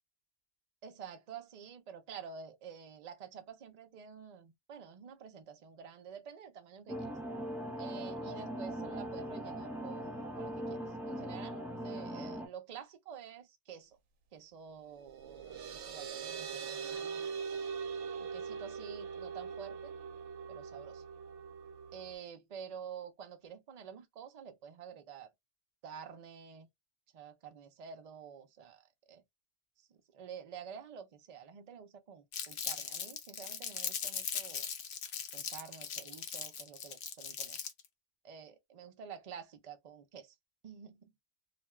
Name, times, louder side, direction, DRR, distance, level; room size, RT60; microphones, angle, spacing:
voice 1, 0.8-7.0 7.8-14.0 14.3-17.6 18.2-19.9 20.5-21.0 21.9-25.3 25.8-26.7 27.1-29.2 29.8-34.7 35.3-37.6 38.2-40.4 40.6-41.1, right 7 dB, 55° right, 0.4 m, -49 dB
sound 1, 6.9-12.5, equal, ahead, 0.7 m, -40 dB
sound 2, 15.0-22.1, right 6 dB, 70° right, 0.9 m, -42 dB
Crumpling crinkling, 32.3-37.9, left 7 dB, 60° left, 0.8 m, -39 dB
2.4 x 2.3 x 3.0 m
omnidirectional pair, 1.3 m